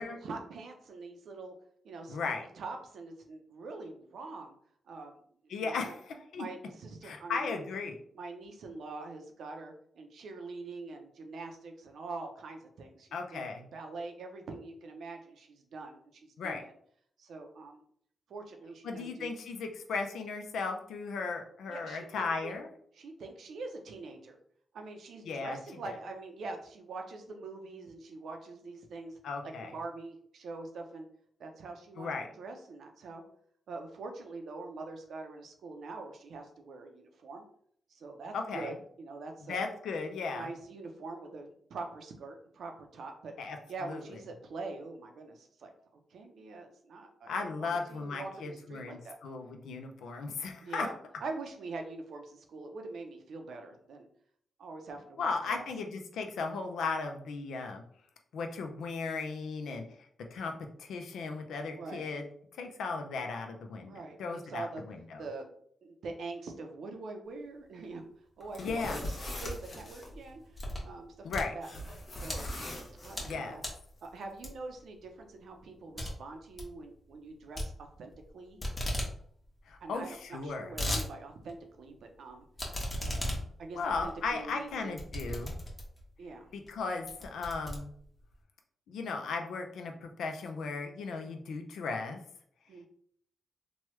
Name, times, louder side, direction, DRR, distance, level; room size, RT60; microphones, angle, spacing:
voice 1, 0.0-1.5 1.8-2.2 2.5-4.5 4.9-5.2 5.4-5.9 6.3-7.7 8.1-13.4 13.7-16.7 17.2-17.8 18.3-19.3 21.7-22.5 22.9-24.4 24.7-29.2 29.4-31.1 31.4-32.1 32.4-33.2 33.7-37.4 37.9-39.6 40.3-43.3 43.7-45.7 46.1-49.2 50.6-50.9 51.2-54.1 54.6-55.7 61.8-62.1 63.9-64.8 65.2-65.5 65.8-68.0 68.4-71.7 72.1-72.5 73.0-73.6 74.0-78.6 79.8-85.0 86.2-86.5 92.7-92.9, right 3 dB, 80° right, 4 dB, 0.6 m, -44 dB
voice 2, 2.1-2.5 5.5-6.5 7.0-7.9 13.1-13.7 16.4-16.6 18.8-22.7 25.3-25.6 25.8-25.9 29.2-29.7 32.0-32.3 38.3-38.7 39.5-40.5 43.4-43.6 43.8-44.0 47.3-50.9 55.2-57.8 58.3-59.9 60.3-60.5 60.8-62.2 62.6-63.9 64.2-65.2 68.6-69.0 71.2-71.5 73.2-73.6 79.7-80.7 83.8-85.6 86.5-87.9 88.9-92.2, left 4 dB, 90° left, 4 dB, 0.4 m, -36 dB
sound 1, 68.4-70.1 71.6-73.4, left 1 dB, 50° left, 0.9 m, -40 dB
sound 2, 70.0-70.9 71.2-72.4 72.9-73.3 73.6-73.9 74.4-74.8 75.2-75.3 75.6-75.7 76.0-76.1 76.4-76.7 77.6-78.3 78.6-79.1 79.5-79.6 79.7-79.8 80.4-81.1 81.5-81.6 82.6-86.1 86.6-86.8 87.1-88.3, equal, 25° left, 1.0 m, -36 dB
3.1 x 2.2 x 3.0 m, 0.64 s
cardioid pair, 65°, 0 cm